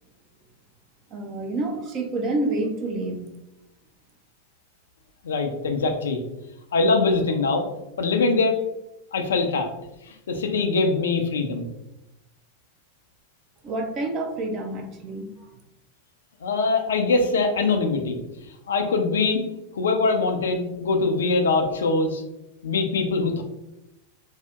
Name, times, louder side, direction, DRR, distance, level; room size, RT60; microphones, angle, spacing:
voice 1, 1.1-3.2 13.6-15.5, right 2 dB, 35° right, 3 dB, 0.5 m, -28 dB
voice 2, 5.2-6.2 6.7-7.6 8.0-8.6 9.1-9.7 10.3-11.7 16.4-18.2 18.7-19.4 19.7-22.2 22.6-23.4, left 3 dB, 65° left, 5 dB, 0.4 m, -22 dB
2.7 x 2.0 x 3.5 m, 0.91 s
figure-of-eight pair, 90°, 0 cm